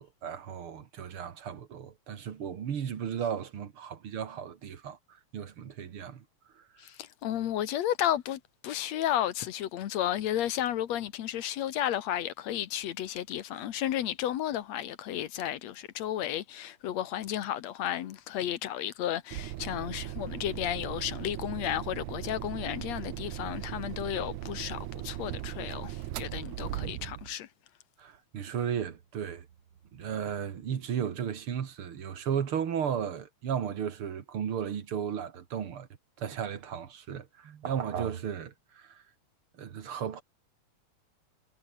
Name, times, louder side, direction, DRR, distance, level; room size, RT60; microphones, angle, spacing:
voice 1, 0.0-6.2 6.5-6.6 26.6-26.7 28.0-29.5 29.9-35.9 36.2-39.0 39.6-40.2, right 8 dB, 50° right, 2.3 m, -35 dB
voice 2, 6.8-27.5, left 11 dB, 65° left, 2.3 m, -33 dB
sound 1, 19.3-27.3, right 15 dB, 85° right, 2.4 m, -38 dB
omnidirectional pair, 3.4 m